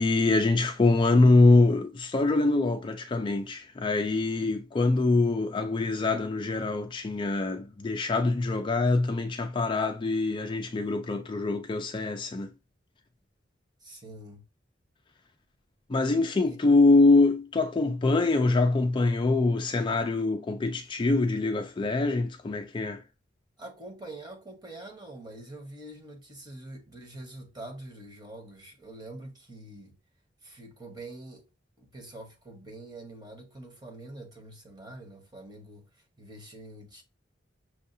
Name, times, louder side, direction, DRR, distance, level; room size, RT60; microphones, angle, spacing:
voice 1, 0.0-12.5 15.9-23.0, left 3 dB, 25° left, 0.4 m, -24 dB
voice 2, 13.8-14.4 16.5-16.6 23.6-30.0 30.4-31.5 31.8-37.0, right 2 dB, 25° right, 1.2 m, -45 dB
6.2 x 2.5 x 2.7 m
head